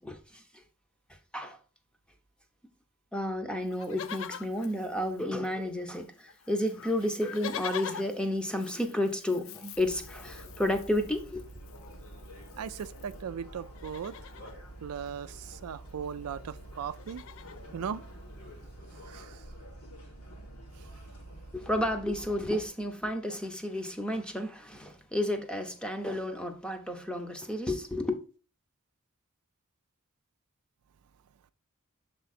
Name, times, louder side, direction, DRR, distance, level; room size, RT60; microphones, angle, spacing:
voice 1, 0.0-0.6 1.3-1.6 3.1-11.5 21.5-28.2, left 1 dB, 5° left, 0.7 m, -32 dB
Livestock farm animals working animals, 3.7-5.7 5.9-6.0 6.3-13.2 13.6-14.6 15.8-16.3 16.7-17.6 18.3-18.4, left 9 dB, 65° left, 0.4 m, -45 dB
sound 1, 9.7-22.7, right 1 dB, 90° left, 2.1 m, -47 dB
voice 2, 12.6-14.1 14.8-17.2 17.7-18.0 19.1-19.4, right 7 dB, 90° right, 0.4 m, -38 dB
6.9 x 3.7 x 4.1 m
head